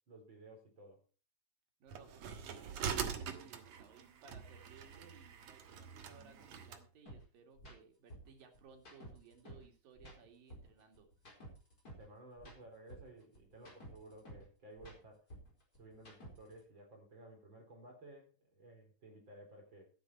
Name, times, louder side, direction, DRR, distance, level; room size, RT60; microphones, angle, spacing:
voice 1, 0.1-1.0 12.0-15.3 15.8-19.9, right 1 dB, 35° right, 2 dB, 4.6 m, -56 dB
voice 2, 1.8-11.1, right 5 dB, 85° right, 4 dB, 4.0 m, -61 dB
sound 1, 1.9-6.8, right 7 dB, 60° right, 2.4 m, -43 dB
sound 2, 7.1-7.2 7.5-7.7 8.1-9.7 10.0-12.1 12.4-14.5 14.7-16.6, right 1 dB, 25° left, 4.7 m, -53 dB
13.5 x 10.0 x 4.5 m, 0.34 s
omnidirectional pair, 3.9 m